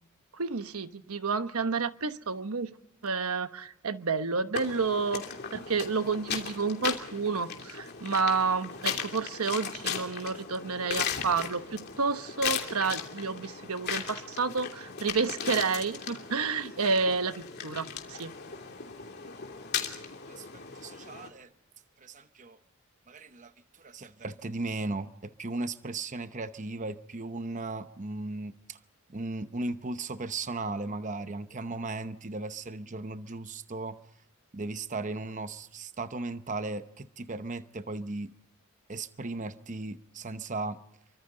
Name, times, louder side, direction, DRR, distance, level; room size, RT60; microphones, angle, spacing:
voice 1, 0.3-2.8 3.0-5.2 5.5-18.3, right 4 dB, 85° right, 1.1 m, -30 dB
sound 1, 4.5-21.3, left 7 dB, 50° left, 2.9 m, -37 dB
voice 2, 20.3-21.5 22.0-22.6 23.1-28.8 29.1-34.0 34.5-38.3 38.9-40.8, right 2 dB, 35° right, 0.8 m, -36 dB
29.5 x 24.5 x 3.9 m
head